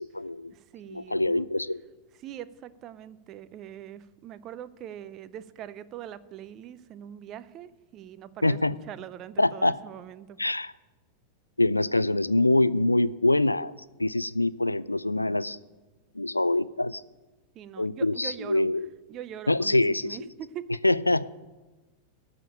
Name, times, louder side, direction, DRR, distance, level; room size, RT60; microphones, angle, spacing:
voice 1, 0.0-0.5 0.9-1.8 8.4-8.7 9.4-9.8 10.4-10.7 11.6-13.7 14.0-15.6 16.2-17.0 17.8-18.9 19.5-20.2 20.8-21.3, left 2 dB, 85° left, 18 dB, 0.3 m, -24 dB
voice 2, 0.5-1.4 2.1-10.4 17.5-18.7 19.1-20.6, right 10 dB, 35° right, 16 dB, 0.5 m, -42 dB
13.5 x 5.1 x 8.7 m, 1.1 s
figure-of-eight pair, 90°, 0 cm